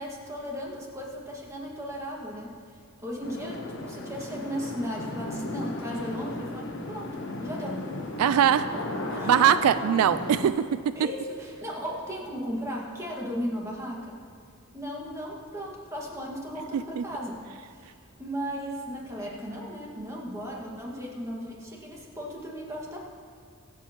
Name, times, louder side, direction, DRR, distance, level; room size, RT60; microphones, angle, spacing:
voice 1, 0.0-7.8 8.7-8.9 9.2-9.7 11.0-14.2 14.7-23.0, equal, 15° right, -3 dB, 1.8 m, -36 dB
sound 1, 3.2-10.5, left 2 dB, 60° left, 1.2 m, -35 dB
voice 2, 8.2-8.7 9.2-10.9 16.7-17.0, right 9 dB, 80° right, 13 dB, 0.3 m, -22 dB
24.5 x 8.1 x 3.0 m, 2.1 s
head